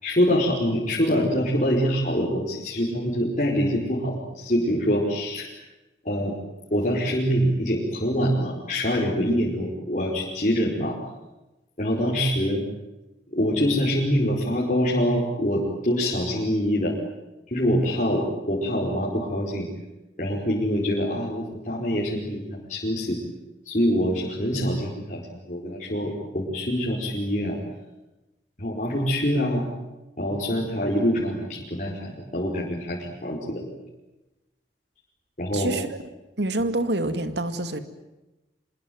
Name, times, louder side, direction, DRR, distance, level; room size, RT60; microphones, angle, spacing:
voice 1, 0.0-5.5 6.0-6.3 6.7-11.0 11.8-12.6 13.3-16.9 17.5-19.7 20.2-23.2 23.7-27.6 28.6-29.7 30.2-33.6 35.4-35.8, equal, 45° left, -4 dB, 5.2 m, -25 dB
voice 2, 35.5-35.9 36.4-37.8, right 2 dB, 75° right, 10 dB, 2.3 m, -26 dB
26.0 x 21.5 x 9.5 m, 1.0 s
head